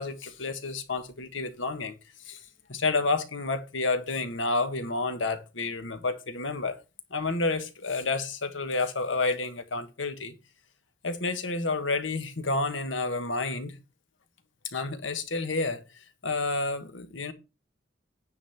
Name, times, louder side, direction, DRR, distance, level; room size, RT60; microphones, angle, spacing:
voice 1, 0.0-1.9 2.2-2.4 2.7-6.7 7.1-10.3 11.0-13.8 14.7-15.8 16.2-17.3, left 3 dB, 85° left, 1.4 m, -30 dB
9.8 x 4.0 x 7.1 m
head